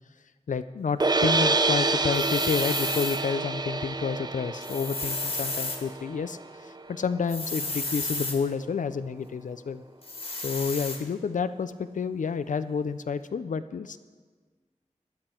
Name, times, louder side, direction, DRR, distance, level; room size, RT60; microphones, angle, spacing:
voice 1, 0.5-6.4 6.6-9.8 10.4-14.0, left 5 dB, 80° left, 12 dB, 0.5 m, -30 dB
sound 1, 1.0-7.2, right 3 dB, 35° right, 0.6 m, -28 dB
sound 2, 2.1-3.2 4.6-5.8 7.3-8.4 10.0-11.0, left 2 dB, 50° left, 1.7 m, -32 dB
15.5 x 10.5 x 4.4 m, 1.4 s
wide cardioid pair, 90°, 13 cm